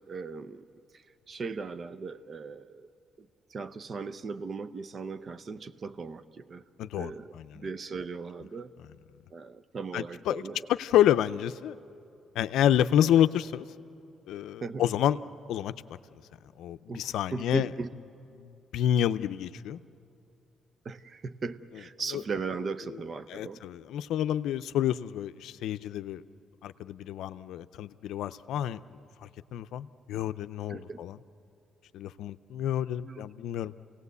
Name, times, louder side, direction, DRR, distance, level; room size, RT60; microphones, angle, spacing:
voice 1, 0.1-0.7 0.9-2.9 3.2-6.6 6.9-8.7 9.3-10.7 14.6-14.8 16.9-17.9 20.8-23.6 30.7-31.1 33.0-33.3, right 4 dB, 45° right, 13 dB, 0.8 m, -38 dB
voice 2, 6.8-7.7 9.9-10.4 10.7-11.8 12.3-13.7 14.3-15.2 15.5-15.7 16.6-17.7 18.4-19.8 22.1-22.2 23.3-26.2 26.6-28.8 29.2-31.2 31.9-33.7, left 11 dB, 85° left, 12 dB, 0.5 m, -28 dB
27.5 x 18.0 x 8.2 m, 2.6 s
cardioid pair, 90°, 0 cm